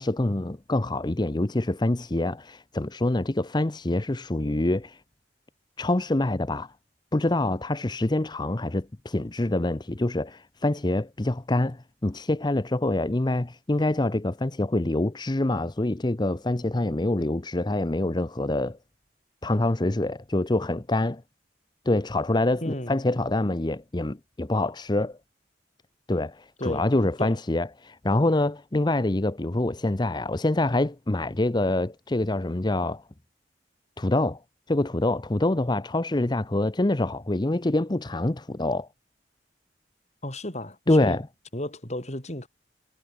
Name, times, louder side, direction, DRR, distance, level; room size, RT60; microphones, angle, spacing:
voice 1, 0.0-5.0 5.8-6.7 7.1-18.8 19.4-21.2 21.9-25.2 26.1-33.0 34.0-34.4 34.7-38.9 40.9-41.2, left 2 dB, 25° left, 0.8 m, -25 dB
voice 2, 22.6-23.0 26.6-26.9 27.2-27.4 40.2-41.2 41.5-42.5, left 1 dB, 40° left, 7.8 m, -33 dB
head